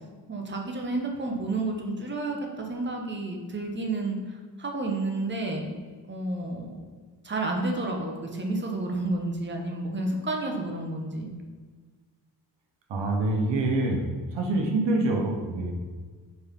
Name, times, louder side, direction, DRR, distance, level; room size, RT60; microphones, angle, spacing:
voice 1, 0.3-5.7 6.1-6.8 7.2-11.3, right 2 dB, 25° right, 1 dB, 1.1 m, -30 dB
voice 2, 12.9-14.0 14.3-15.7, right 2 dB, 85° right, 2 dB, 1.0 m, -25 dB
4.6 x 4.3 x 5.3 m, 1.5 s
cardioid pair, 80°, 43 cm